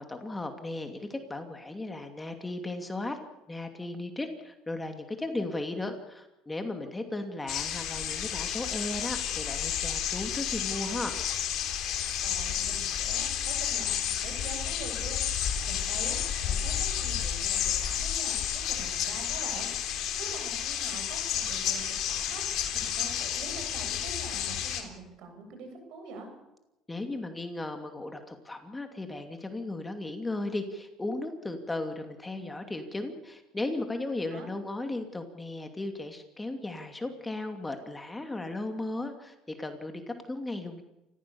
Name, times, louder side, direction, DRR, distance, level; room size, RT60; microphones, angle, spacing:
voice 1, 0.0-3.2 3.5-11.2 26.9-40.8, left 2 dB, 15° left, 5 dB, 2.7 m, -36 dB
sound 1, 7.5-24.8, left 9 dB, 60° left, 3.6 m, -31 dB
voice 2, 12.2-26.3 34.3-34.5, right 4 dB, 65° right, 5 dB, 7.7 m, -45 dB
29.0 x 15.5 x 7.1 m, 0.95 s
supercardioid pair, 105°, 0 cm